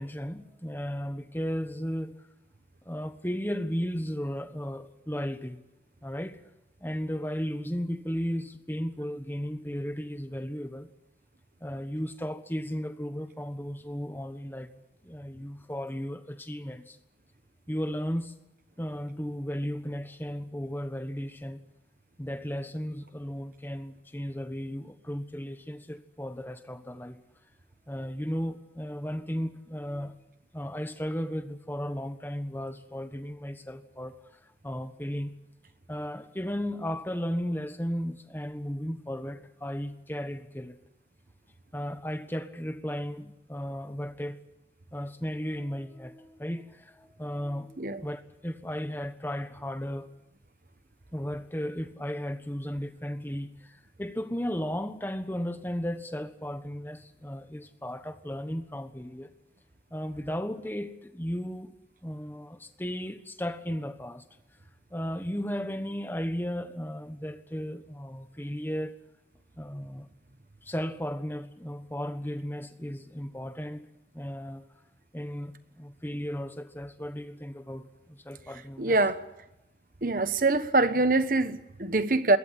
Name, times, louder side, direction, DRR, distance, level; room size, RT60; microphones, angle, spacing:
voice 1, 0.0-2.2 2.8-5.6 6.0-6.4 6.8-10.9 11.6-14.7 15.0-17.0 17.7-18.3 18.8-21.6 22.2-27.2 27.9-30.1 30.5-34.1 34.6-35.4 35.9-40.8 41.7-44.4 44.9-50.1 51.1-53.5 54.0-59.3 59.9-61.7 62.0-64.2 64.9-69.0 69.6-70.1 70.6-73.9 74.1-74.6 75.1-79.0, equal, 10° left, 1.3 m, -35 dB
voice 2, 78.8-79.2 80.0-82.4, right 2 dB, 50° right, 1.1 m, -24 dB
21.5 x 17.5 x 9.8 m
head